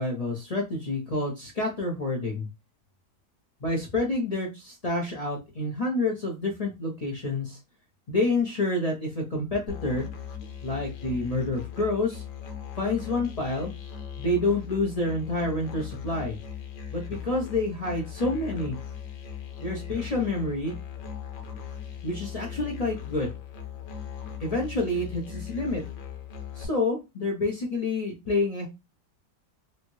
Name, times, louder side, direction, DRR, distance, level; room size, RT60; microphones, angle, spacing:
voice 1, 0.0-2.5 3.6-7.6 8.1-10.1 10.6-12.2 12.8-13.7 14.2-16.4 16.9-18.8 19.6-20.7 22.0-23.3 24.4-25.8 26.6-28.7, left 2 dB, 60° left, -2 dB, 0.4 m, -28 dB
Musical instrument, 9.7-26.6, left 8 dB, 85° left, 1.4 m, -39 dB
3.2 x 2.7 x 3.0 m, 0.24 s
omnidirectional pair, 1.9 m